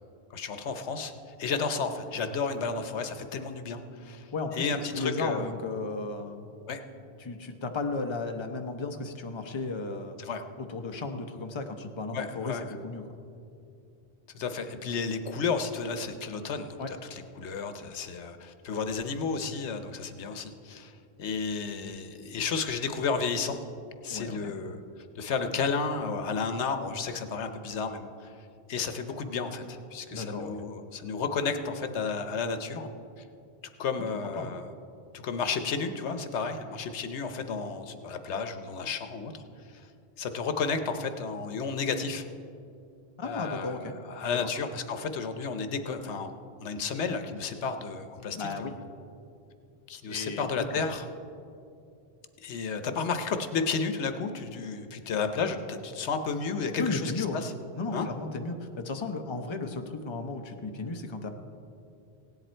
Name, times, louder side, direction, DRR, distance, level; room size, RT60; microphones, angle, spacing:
voice 1, 0.3-1.1 1.4-5.5 6.7-6.8 10.2-10.4 12.1-12.6 14.3-20.9 21.2-23.5 24.0-24.8 25.1-28.3 28.7-32.9 33.8-34.7 35.1-39.4 39.7-39.8 40.2-42.3 43.2-46.3 46.6-48.7 49.9-51.1 52.4-57.5 57.9-58.1, left 5 dB, 85° left, 8 dB, 1.1 m, -32 dB
voice 2, 4.3-6.4 7.2-10.2 10.6-13.0 16.8-16.9 24.1-24.5 30.1-30.5 34.4-34.5 43.2-43.9 44.4-44.5 48.3-48.8 50.0-50.5 56.8-57.5 57.7-61.3, left 3 dB, 30° left, 4 dB, 0.8 m, -34 dB
17.0 x 10.5 x 4.4 m, 2.6 s
omnidirectional pair, 1.1 m